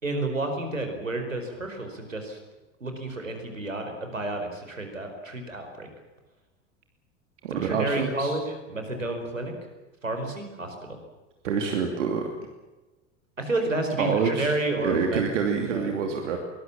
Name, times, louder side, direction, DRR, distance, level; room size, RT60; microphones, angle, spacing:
voice 1, 0.0-2.4 2.8-5.9 7.5-9.5 10.0-11.0 13.4-15.2 15.7-15.9, right 2 dB, 90° right, 5 dB, 4.8 m, -30 dB
voice 2, 7.4-8.3 11.4-12.2 14.0-14.5 14.8-16.4, right 6 dB, 70° right, 3 dB, 2.9 m, -26 dB
23.5 x 20.0 x 7.3 m, 1.2 s
figure-of-eight pair, 80°, 38 cm